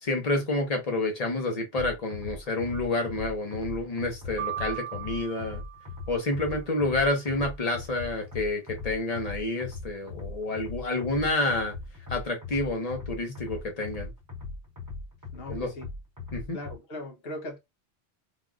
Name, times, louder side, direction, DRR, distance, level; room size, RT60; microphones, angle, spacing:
voice 1, 0.0-5.6 6.1-11.7 12.1-14.1 15.5-15.7 16.3-16.6, left 2 dB, 40° left, 0.9 m, -29 dB
sound 1, 1.7-16.8, left 3 dB, 20° right, 0.6 m, -40 dB
sound 2, 4.4-6.5, right 10 dB, 90° right, 0.9 m, -38 dB
voice 2, 15.3-15.9 16.5-17.6, left 1 dB, 60° left, 1.1 m, -39 dB
3.4 x 2.4 x 2.3 m
omnidirectional pair, 1.1 m